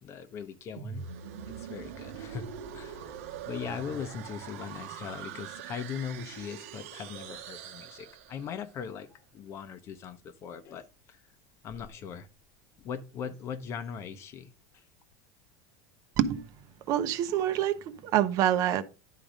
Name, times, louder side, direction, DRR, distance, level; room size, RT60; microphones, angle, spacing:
voice 1, 0.0-1.1 1.6-2.4 2.7-3.1 3.5-10.9 11.6-12.3 12.8-14.5, left 7 dB, 40° left, 0.8 m, -39 dB
sound 1, 0.8-8.6, right 8 dB, 85° right, 1.1 m, -43 dB
voice 2, 16.9-18.8, right 11 dB, 50° right, 0.8 m, -26 dB
10.5 x 3.8 x 5.0 m
supercardioid pair, 140°, 8 cm